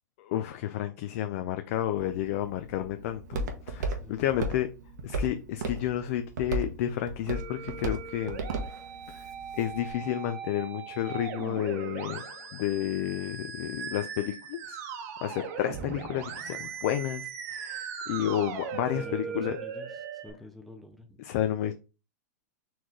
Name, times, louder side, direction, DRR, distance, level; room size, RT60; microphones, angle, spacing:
voice 1, 0.2-4.7 5.0-8.4 9.1-9.3 9.6-12.2 12.5-14.8 15.2-19.6 21.2-21.7, left 12 dB, 50° left, 0.4 m, -31 dB
Walk footsteps, 2.0-9.9, right 2 dB, 80° right, 1.0 m, -36 dB
Musical instrument, 7.3-20.3, right 6 dB, 55° right, 1.0 m, -39 dB
voice 2, 18.9-21.2, left 2 dB, ahead, 0.5 m, -47 dB
4.3 x 3.1 x 3.7 m
hypercardioid pair, 140°, 9 cm